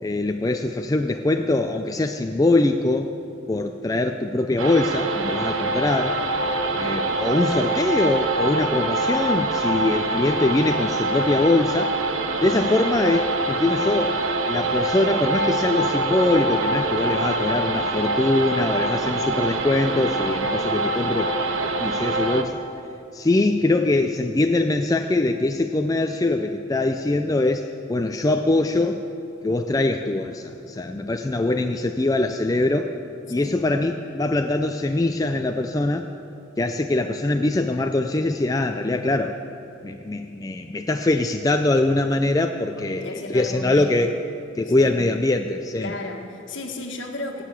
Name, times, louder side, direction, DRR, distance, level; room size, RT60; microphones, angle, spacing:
voice 1, 0.0-3.1 3.5-6.2 6.8-11.9 12.4-14.2 14.5-21.3 21.8-22.6 23.1-29.0 29.4-32.9 33.3-36.1 36.6-39.4 39.8-44.1 44.6-45.9, left 2 dB, 15° left, 5 dB, 0.4 m, -22 dB
sound 1, 4.6-22.4, right 2 dB, 75° right, 0.9 m, -24 dB
voice 2, 42.8-43.9 44.8-45.0 45.8-47.4, left 2 dB, 65° left, 3 dB, 1.5 m, -34 dB
17.5 x 6.7 x 8.4 m, 2.8 s
head